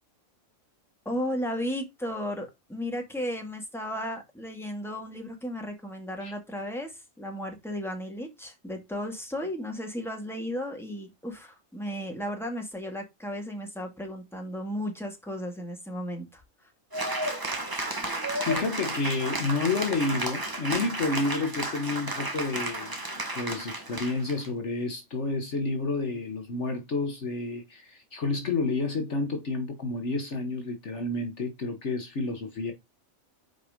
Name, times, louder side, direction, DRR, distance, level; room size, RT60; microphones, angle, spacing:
voice 1, 1.1-16.7, equal, ahead, 2.2 m, -34 dB
Cheering / Applause, 16.9-24.5, right 1 dB, 15° right, 1.1 m, -33 dB
voice 2, 18.4-23.0 23.3-32.7, left 3 dB, 55° left, 1.4 m, -30 dB
6.0 x 4.9 x 5.1 m
omnidirectional pair, 1.4 m